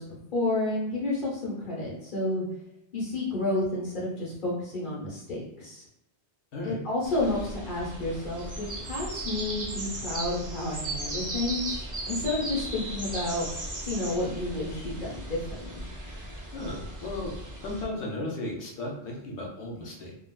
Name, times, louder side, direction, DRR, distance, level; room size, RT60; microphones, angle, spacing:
voice 1, 0.0-2.4 2.9-5.8 6.6-11.8 12.0-13.5 13.9-15.8, left 2 dB, 50° left, -4 dB, 1.0 m, -30 dB
sound 1, 7.0-17.8, right 1 dB, 30° right, 0.4 m, -37 dB
voice 2, 16.5-17.3 17.6-20.1, left 2 dB, 80° left, -1 dB, 1.0 m, -35 dB
3.6 x 2.4 x 2.2 m, 0.85 s
omnidirectional pair, 1.2 m